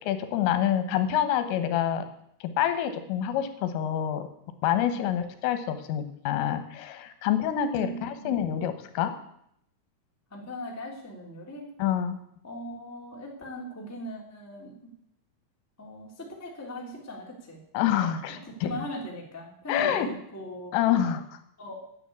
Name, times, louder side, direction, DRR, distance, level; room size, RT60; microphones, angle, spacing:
voice 1, 0.0-2.1 2.4-4.3 4.6-9.1 11.8-12.2 17.8-18.7 19.7-20.1 20.7-21.4, left 10 dB, 80° left, 10 dB, 3.7 m, -27 dB
voice 2, 7.7-8.3 10.3-11.7 12.4-14.9 15.8-17.6 18.3-20.7 21.6-21.7, equal, 10° left, -1 dB, 1.0 m, -39 dB
10.0 x 9.7 x 8.5 m, 0.74 s
omnidirectional pair, 5.8 m